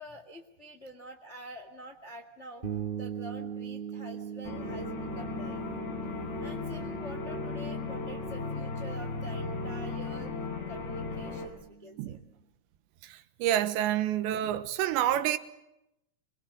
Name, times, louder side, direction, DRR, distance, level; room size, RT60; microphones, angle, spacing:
voice 1, 0.0-2.6 2.9-5.6 6.4-10.3 10.7-12.2, equal, 60° left, 0.7 m, -47 dB
sound 1, 2.6-12.2, right 8 dB, 10° right, 5.5 m, -42 dB
sound 2, 4.4-11.5, left 3 dB, 80° left, 5.9 m, -36 dB
voice 2, 13.1-15.4, right 12 dB, 85° right, 3.4 m, -28 dB
26.0 x 21.5 x 7.7 m
omnidirectional pair, 5.0 m